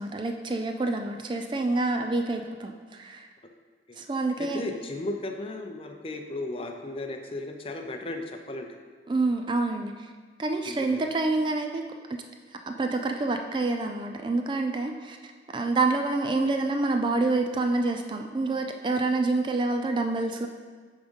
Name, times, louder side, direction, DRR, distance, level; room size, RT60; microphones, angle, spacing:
voice 1, 0.0-3.3 4.0-4.6 9.1-10.1 10.4-11.8 12.1-12.2 12.7-20.5, right 3 dB, 25° right, 5 dB, 0.3 m, -27 dB
voice 2, 4.4-8.7 10.6-11.0, left 2 dB, 30° left, 5 dB, 0.5 m, -35 dB
8.6 x 3.7 x 5.3 m, 1.5 s
head